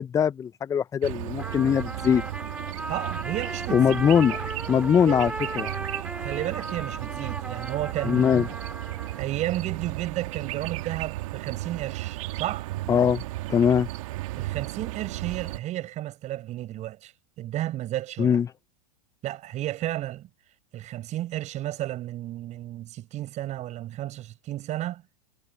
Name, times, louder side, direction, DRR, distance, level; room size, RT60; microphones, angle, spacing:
voice 1, 0.0-2.2 3.7-4.4 4.7-5.7 8.0-8.5 12.9-13.2 13.5-13.9 18.2-18.5, left 8 dB, 15° left, 0.5 m, -21 dB
sound 1, 1.0-15.6, right 18 dB, 65° right, 2.6 m, -34 dB
Trumpet, 1.4-9.3, right 2 dB, 5° right, 4.8 m, -36 dB
voice 2, 2.9-3.9 5.0-5.2 6.1-8.3 9.2-12.7 14.3-17.1 17.4-18.4 19.2-20.3 20.7-25.0, right 14 dB, 40° right, 6.6 m, -32 dB
hypercardioid pair, 105°, 19 cm